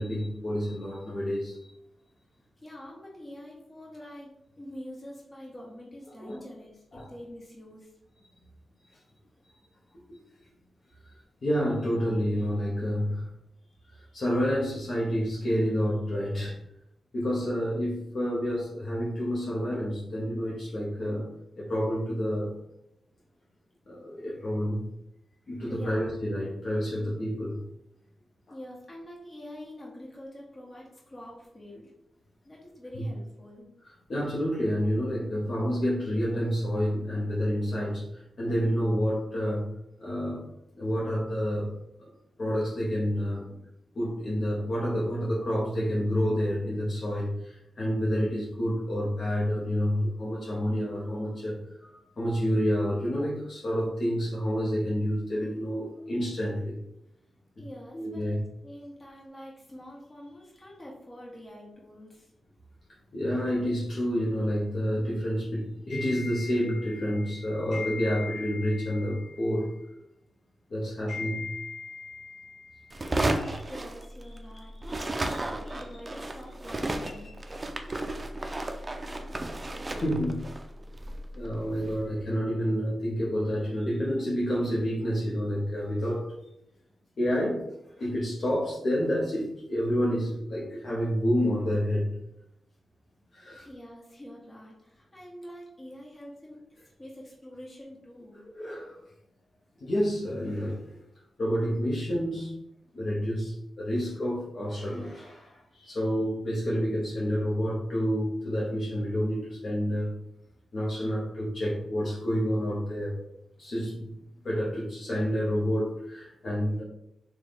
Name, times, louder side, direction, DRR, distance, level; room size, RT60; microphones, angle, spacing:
voice 1, 0.0-1.8 6.2-6.4 6.9-7.1 8.9-9.0 9.9-10.5 11.0-13.3 13.9-16.6 17.1-21.3 21.6-22.5 23.9-24.8 25.5-27.6 32.9-33.0 33.8-39.7 40.0-40.5 40.7-42.1 42.4-43.6 43.9-56.8 57.6-57.7 57.9-58.4 63.1-69.9 70.7-73.7 74.5-75.4 77.5-77.6 79.0-79.4 79.9-80.5 81.3-86.3 87.2-87.7 88.0-92.2 93.3-93.7 98.5-99.0 99.8-101.0 101.4-102.5 102.9-110.2 110.7-113.1 113.6-114.1 114.4-116.8, equal, 55° left, -5 dB, 0.9 m, -29 dB
voice 2, 2.6-7.9 25.7-26.2 28.5-31.9 32.4-33.7 57.6-58.3 58.6-62.3 73.6-77.3 93.6-96.6 97.0-98.4, equal, 30° left, -4 dB, 1.4 m, -46 dB
sound 1, 72.9-74.5 74.8-82.0, right 2 dB, 30° right, 0.4 m, -33 dB
3.2 x 2.3 x 4.0 m, 0.82 s
cardioid pair, 70°, 0 cm